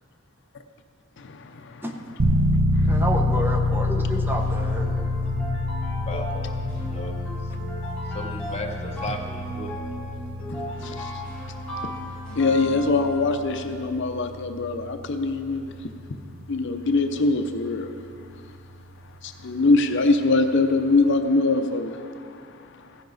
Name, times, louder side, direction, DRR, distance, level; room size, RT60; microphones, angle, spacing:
voice 1, 1.2-1.8 2.7-3.0 10.5-11.2 12.4-15.7 16.5-17.9 19.2-22.3, left 3 dB, 60° left, 7 dB, 0.6 m, -23 dB
sound 1, 2.2-18.9, left 1 dB, 80° right, 0.9 m, -28 dB
voice 2, 2.8-4.9, right 1 dB, 10° right, 3 dB, 0.8 m, -30 dB
sound 2, 4.4-13.6, equal, 5° left, 3.3 m, -36 dB
voice 3, 6.0-7.4 8.1-9.7, left 1 dB, 30° left, 2 dB, 0.9 m, -36 dB
15.0 x 10.5 x 4.0 m, 2.5 s
head